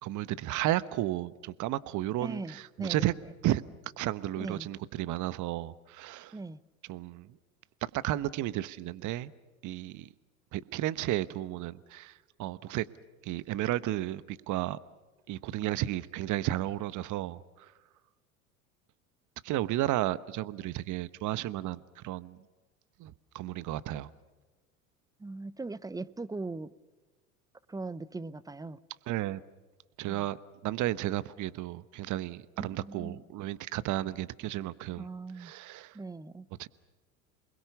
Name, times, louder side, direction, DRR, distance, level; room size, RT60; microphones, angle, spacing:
voice 1, 0.0-3.1 3.4-3.6 4.0-6.3 6.9-7.3 7.9-9.3 9.6-10.1 10.5-12.1 12.4-12.8 13.2-14.8 15.3-17.7 19.4-22.4 23.0-24.1 29.1-29.4 30.0-30.4 30.6-35.1 35.4-36.0 36.6-36.7, right 14 dB, 45° right, 17 dB, 1.1 m, -33 dB
voice 2, 2.2-3.3 4.4-4.7 6.3-6.6 25.2-26.7 27.7-28.8 32.6-33.2 35.0-35.5 35.9-36.5, right 3 dB, 10° right, 18 dB, 0.7 m, -40 dB
28.0 x 21.5 x 6.9 m, 1.3 s
hypercardioid pair, 80°, 42 cm